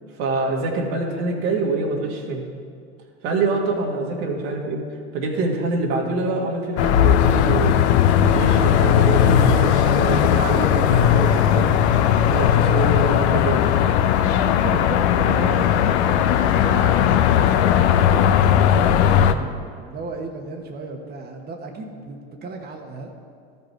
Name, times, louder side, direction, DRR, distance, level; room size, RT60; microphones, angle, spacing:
voice 1, 0.2-2.5 3.2-4.8 5.1-7.8 8.2-11.8 12.3-13.7, right 3 dB, 70° right, -1 dB, 1.8 m, -25 dB
sound 1, 6.8-19.3, left 9 dB, 80° left, 0.6 m, -17 dB
voice 2, 9.8-10.2 14.6-18.8 19.2-23.1, right 3 dB, 30° right, 1 dB, 1.1 m, -34 dB
13.5 x 5.4 x 4.5 m, 2.2 s
hypercardioid pair, 85°, 33 cm